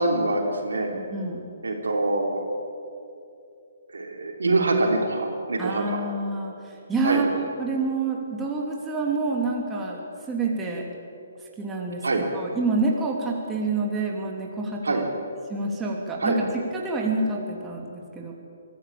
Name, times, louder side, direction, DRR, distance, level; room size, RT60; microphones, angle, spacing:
voice 1, 0.0-0.9 1.6-2.4 3.9-6.0 7.0-7.3 12.0-12.2 14.8-15.0 16.2-16.4, right 2 dB, 75° right, 2 dB, 3.4 m, -24 dB
voice 2, 0.9-1.4 5.6-10.0 10.3-10.8 11.6-12.0 12.3-15.0 15.5-18.3, right 3 dB, 10° right, -1 dB, 3.2 m, -28 dB
23.5 x 14.5 x 8.8 m, 2.6 s
figure-of-eight pair, 135°, 0 cm